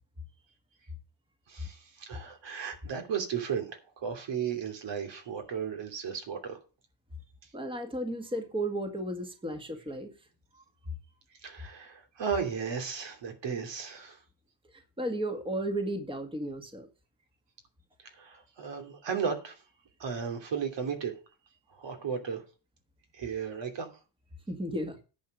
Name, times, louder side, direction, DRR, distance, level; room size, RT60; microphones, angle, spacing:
voice 1, 1.5-6.6 11.4-14.2 18.1-19.6 20.0-21.1 21.7-22.4 23.1-23.9, right 7 dB, 60° right, 2.9 m, -35 dB
voice 2, 7.5-10.1 15.0-16.9 24.5-25.0, right 1 dB, 10° right, 1.8 m, -34 dB
10.5 x 7.7 x 5.4 m
cardioid pair, 115°, 49 cm